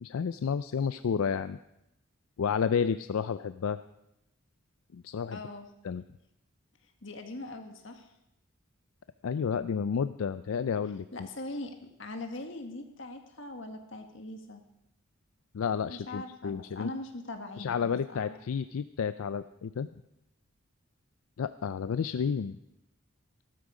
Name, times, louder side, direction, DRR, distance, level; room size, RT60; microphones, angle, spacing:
voice 1, 0.0-1.6 2.4-3.8 4.9-5.4 5.8-6.0 9.2-11.0 15.5-16.9 17.6-19.9 21.4-22.6, left 6 dB, 80° left, 12 dB, 0.4 m, -31 dB
voice 2, 5.3-5.7 6.8-8.1 11.1-14.6 15.9-18.4, left 2 dB, 60° left, 5 dB, 1.6 m, -41 dB
14.5 x 12.5 x 4.9 m, 0.86 s
head